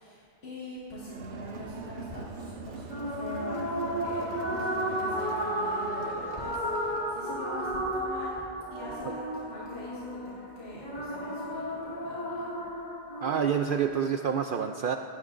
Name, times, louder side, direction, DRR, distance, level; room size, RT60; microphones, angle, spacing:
voice 1, 0.0-8.4 8.7-12.6, left 1 dB, 65° left, -8 dB, 2.2 m, -43 dB
Crowd, 1.0-7.3, right 3 dB, 80° right, 1.2 m, -42 dB
sound 1, 2.9-13.8, equal, 40° left, 1.9 m, -33 dB
voice 2, 13.2-15.0, right 8 dB, 60° right, 6 dB, 0.6 m, -27 dB
18.0 x 17.0 x 2.6 m, 2.3 s
omnidirectional pair, 1.1 m